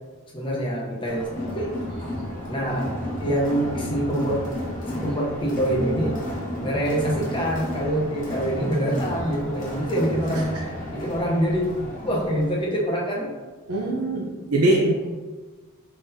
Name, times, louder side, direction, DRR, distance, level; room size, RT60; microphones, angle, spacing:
voice 1, 0.3-1.8 2.5-2.9 3.2-4.5 4.9-6.3 6.6-10.5 10.9-11.7 12.0-13.3, equal, 25° left, -2 dB, 0.8 m, -25 dB
Crowd, 1.1-12.6, left 1 dB, 40° left, 1.1 m, -33 dB
voice 2, 13.7-15.1, right 1 dB, 90° right, -2 dB, 0.6 m, -22 dB
4.9 x 3.8 x 2.7 m, 1.3 s
head